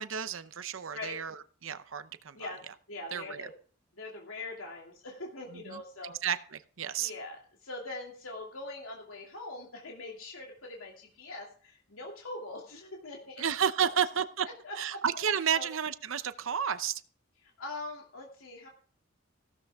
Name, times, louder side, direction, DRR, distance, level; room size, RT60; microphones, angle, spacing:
voice 1, 0.0-1.4 1.6-2.4 3.1-3.5 5.7-5.8 6.2-6.4 6.8-7.1 13.4-14.5 14.8-17.0, right 8 dB, 70° right, 12 dB, 0.7 m, -31 dB
voice 2, 2.9-3.5 3.9-6.1 7.0-13.4 13.8-13.9 14.4-15.0 15.5-15.7 17.4-18.7, left 2 dB, 90° left, -1 dB, 2.7 m, -42 dB
16.0 x 13.0 x 3.6 m, 0.43 s
head